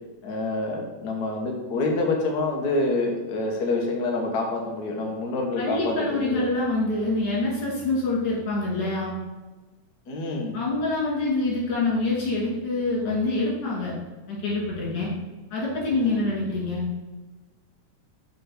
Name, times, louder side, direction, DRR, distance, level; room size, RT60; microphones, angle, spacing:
voice 1, 0.2-6.5 10.1-10.6 15.9-16.2, left 2 dB, 55° left, 0 dB, 1.1 m, -27 dB
voice 2, 5.6-9.1 10.5-14.0 14.3-15.1 15.5-16.8, left 2 dB, 85° left, -5 dB, 3.9 m, -26 dB
6.8 x 3.4 x 5.8 m, 1.2 s
omnidirectional pair, 3.3 m